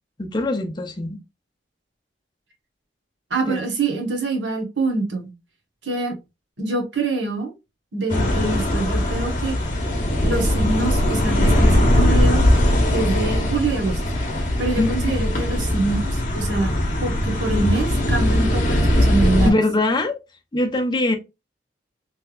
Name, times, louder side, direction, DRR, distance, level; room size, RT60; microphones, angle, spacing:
voice 1, 0.2-1.2 3.5-3.6 14.7-15.1 19.4-20.2 20.5-21.2, left 2 dB, 25° left, 0.6 m, -22 dB
voice 2, 3.3-5.3 5.8-6.2 6.6-7.5 7.9-9.6 10.2-12.4 12.9-14.0 14.6-16.7 17.0-19.6, right 3 dB, 85° right, 1.1 m, -25 dB
sound 1, 8.1-19.5, left 1 dB, 45° left, 0.9 m, -20 dB
3.3 x 3.2 x 2.3 m
head